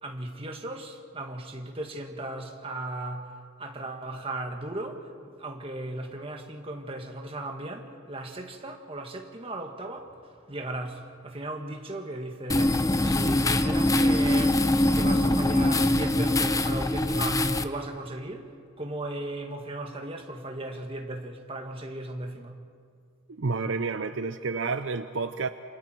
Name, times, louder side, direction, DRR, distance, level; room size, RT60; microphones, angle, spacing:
voice 1, 0.0-3.3 3.6-18.5 18.8-22.6, right 1 dB, 30° right, 1.9 m, -37 dB
sound 1, 12.5-17.6, left 1 dB, 15° left, 0.7 m, -23 dB
voice 2, 23.3-25.5, right 4 dB, 65° right, 0.6 m, -30 dB
28.0 x 27.5 x 4.6 m
head